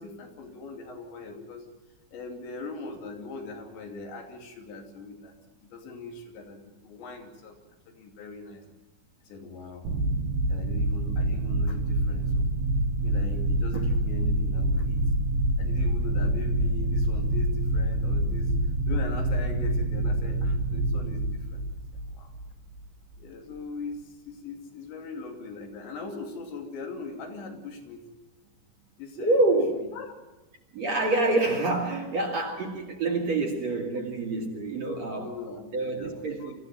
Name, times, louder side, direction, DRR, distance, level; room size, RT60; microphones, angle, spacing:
voice 1, 0.0-1.7 2.1-5.4 5.6-7.6 7.9-8.6 9.2-9.8 10.5-12.5 13.0-15.0 15.6-18.5 18.9-21.6 22.1-22.3 23.2-28.1 29.0-29.5 29.7-30.1 35.2-36.6, left 3 dB, 80° left, 3 dB, 5.1 m, -40 dB
sound 1, 9.8-22.8, right 1 dB, 70° right, 3.7 m, -26 dB
voice 2, 29.2-29.8 30.7-35.3 35.7-36.6, right 2 dB, 45° right, 1 dB, 3.0 m, -27 dB
25.5 x 15.0 x 9.4 m, 1.1 s
omnidirectional pair, 5.1 m